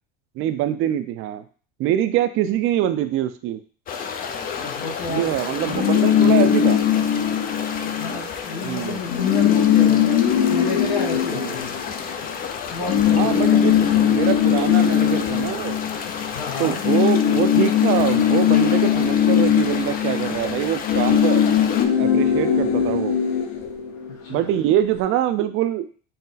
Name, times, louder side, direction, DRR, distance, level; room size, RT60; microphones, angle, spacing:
voice 1, 0.4-1.4 1.8-3.6 5.1-6.8 8.6-9.0 11.3-11.5 13.1-13.8 14.0-15.8 16.6-21.5 22.0-23.2 24.3-25.9, right 12 dB, 40° right, 10 dB, 0.4 m, -24 dB
sound 1, 3.9-21.8, left 6 dB, 30° left, 0.4 m, -32 dB
voice 2, 4.3-5.3 5.6-6.5 7.8-10.2 10.4-11.7 12.6-14.1 16.3-16.8 24.2-24.5, left 4 dB, 75° left, -4 dB, 1.3 m, -32 dB
sound 2, 5.7-8.2 8.5-8.7 8.9-12.3 12.9-16.4 16.7-24.3, left 9 dB, 55° left, 0.8 m, -20 dB
4.0 x 2.1 x 4.0 m, 0.40 s
supercardioid pair, 120°, 31 cm